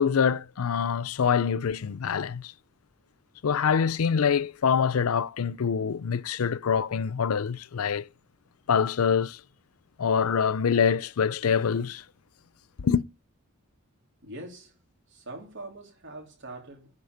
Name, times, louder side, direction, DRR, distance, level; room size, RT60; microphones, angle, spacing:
voice 1, 0.0-2.5 3.4-8.1 8.7-9.4 10.0-12.0 12.8-13.0, left 6 dB, 90° left, 0.5 m, -25 dB
voice 2, 14.2-14.8 15.1-16.9, right 2 dB, 60° right, 3.0 m, -43 dB
10.5 x 4.8 x 6.5 m
head